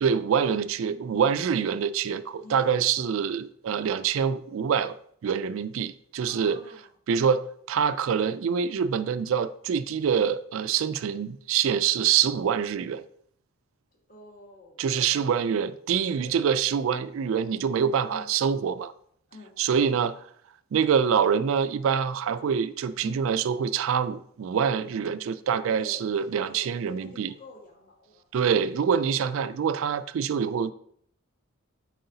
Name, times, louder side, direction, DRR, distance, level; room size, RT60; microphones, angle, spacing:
voice 1, 0.0-5.0 5.2-6.6 7.1-13.0 14.8-18.9 19.6-20.2 20.7-27.3 28.3-30.7, right 7 dB, 65° right, 0.3 m, -25 dB
voice 2, 2.4-2.8 6.3-6.9 13.9-15.5 16.0-16.4 18.1-18.3 19.3-19.5 23.0-23.2 25.8-28.2, left 2 dB, 40° left, 1.7 m, -48 dB
7.7 x 4.7 x 2.7 m
head